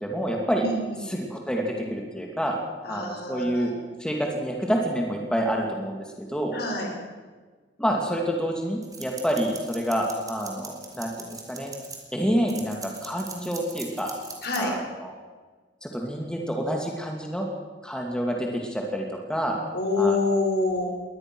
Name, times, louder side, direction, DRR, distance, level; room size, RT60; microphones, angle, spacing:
voice 1, 0.0-0.7 1.1-2.6 2.9-3.7 4.0-6.6 7.8-11.7 12.1-14.2 14.6-15.1 15.8-17.5 17.8-19.6 20.0-20.2, equal, 5° left, 0 dB, 2.6 m, -28 dB
voice 2, 0.6-1.0 2.8-3.7 6.5-6.9 14.4-14.7 19.7-20.9, left 2 dB, 60° left, 2 dB, 5.3 m, -26 dB
sound 1, 8.8-12.0 12.5-14.6, right 4 dB, 20° right, 4.0 m, -40 dB
22.0 x 19.0 x 6.3 m, 1.4 s
head